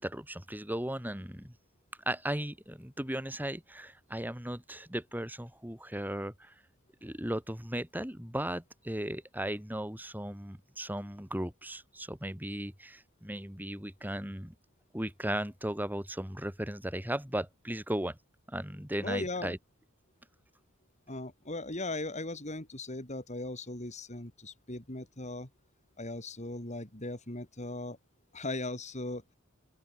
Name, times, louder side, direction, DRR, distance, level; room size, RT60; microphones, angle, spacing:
voice 1, 0.0-1.5 2.1-6.5 7.0-14.5 14.9-18.2 18.5-19.6, right 1 dB, 10° right, 4.6 m, -36 dB
voice 2, 19.0-19.6 21.1-25.5 26.0-28.0 28.3-29.2, left 2 dB, 35° left, 4.2 m, -38 dB
open air
head